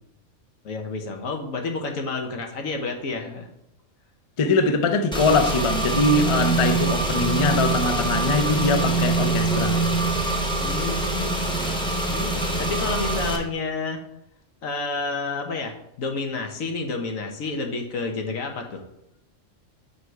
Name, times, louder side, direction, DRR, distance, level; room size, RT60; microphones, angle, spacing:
voice 1, 0.6-3.5 10.6-11.4 11.8-14.0 14.6-18.8, left 3 dB, 90° left, 1.4 m, -30 dB
voice 2, 4.4-9.8, left 3 dB, 55° left, 0.3 m, -22 dB
Car / Engine, 5.1-13.4, right 2 dB, 5° left, 0.7 m, -24 dB
6.3 x 5.2 x 4.6 m
omnidirectional pair, 1.4 m